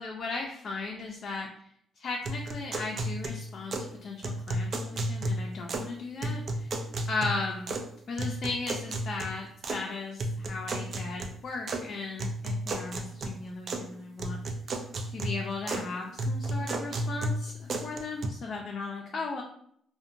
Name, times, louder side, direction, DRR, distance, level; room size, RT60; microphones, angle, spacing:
voice 1, 0.0-1.5 2.0-6.7 7.1-14.4 15.1-19.4, left 3 dB, 55° left, 0 dB, 0.4 m, -36 dB
sound 1, 2.3-3.9 4.2-5.9 6.2-7.9 8.2-9.8 10.2-11.8 12.2-13.9 14.2-15.9 16.2-18.3, right 1 dB, 50° right, 0.3 m, -33 dB
2.7 x 2.1 x 2.5 m, 0.68 s
cardioid pair, 90°, 0 cm